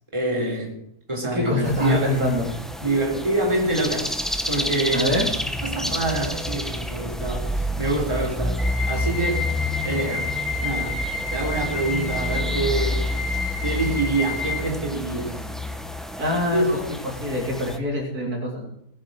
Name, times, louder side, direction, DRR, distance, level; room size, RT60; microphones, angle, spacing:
voice 1, 0.1-0.7 1.1-2.1 2.8-5.2 5.6-9.5 9.8-11.0 11.3-15.4 16.5-16.8, right 2 dB, 20° right, -2 dB, 3.5 m, -26 dB
voice 2, 1.3-2.5 4.9-5.3 13.4-13.6 16.2-16.7 17.2-18.7, left 2 dB, 70° right, -1 dB, 3.7 m, -24 dB
sound 1, 1.6-17.8, equal, ahead, 0.5 m, -29 dB
sound 2, 8.6-14.6, left 4 dB, 45° left, 5.4 m, -30 dB
19.5 x 7.4 x 6.3 m, 0.73 s
omnidirectional pair, 1.7 m